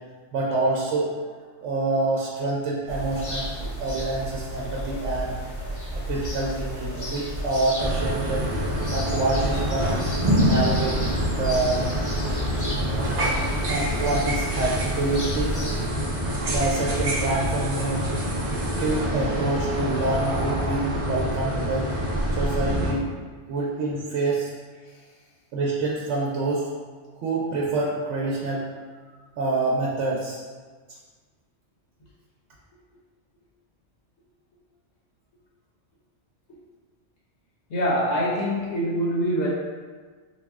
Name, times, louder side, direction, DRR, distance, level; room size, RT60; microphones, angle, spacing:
voice 1, 0.3-5.3 5.9-8.4 8.9-10.0 10.4-11.8 12.7-13.3 13.7-15.6 16.5-18.1 18.8-21.9 22.3-23.1 23.5-24.5 25.5-26.7 27.1-28.7 29.4-30.4, right 2 dB, 80° right, -4 dB, 0.9 m, -27 dB
sound 1, 2.9-15.9, equal, 20° left, 0.5 m, -33 dB
sound 2, 7.8-22.9, equal, 40° right, 0.5 m, -26 dB
voice 2, 37.7-39.5, equal, 70° left, -5 dB, 1.0 m, -24 dB
4.0 x 2.1 x 3.4 m, 1.4 s
omnidirectional pair, 1.2 m